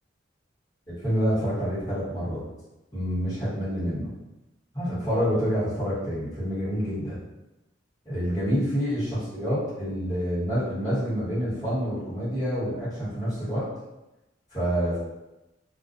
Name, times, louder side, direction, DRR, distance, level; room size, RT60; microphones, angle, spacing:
voice 1, 0.9-2.4 2.9-4.1 4.7-7.2 8.0-13.7 14.5-15.0, equal, 20° left, -13 dB, 1.2 m, -27 dB
2.3 x 2.1 x 2.5 m, 0.99 s
head